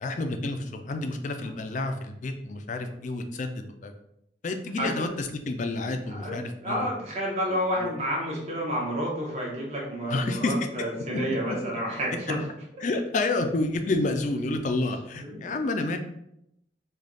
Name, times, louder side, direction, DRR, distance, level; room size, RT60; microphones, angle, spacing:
voice 1, 0.0-3.9 4.4-6.9 7.8-7.9 10.1-10.5 12.8-16.0, left 2 dB, 45° left, 6 dB, 0.4 m, -29 dB
voice 2, 4.8-5.1 6.1-6.4 6.6-12.4 15.2-15.4, equal, 35° right, -4 dB, 0.9 m, -30 dB
3.2 x 2.3 x 3.9 m, 0.79 s
head